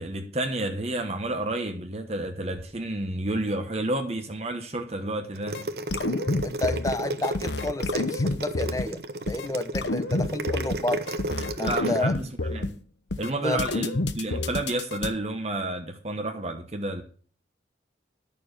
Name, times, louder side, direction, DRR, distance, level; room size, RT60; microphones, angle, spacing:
voice 1, 0.0-5.7 11.6-12.8 13.2-17.0, right 2 dB, 35° right, 1.1 m, -30 dB
sound 1, 5.3-12.0, right 1 dB, 60° right, 1.1 m, -32 dB
sound 2, 5.5-5.6 5.9-6.9 7.2-8.9 9.3-9.5 9.7-10.8 11.1-12.7 13.1-13.3 13.6-15.1, left 2 dB, 80° left, 1.0 m, -28 dB
voice 2, 6.4-9.0 9.3-11.1 11.6-12.2 13.4-13.6, left 2 dB, 20° left, 0.7 m, -30 dB
11.5 x 6.8 x 6.5 m
head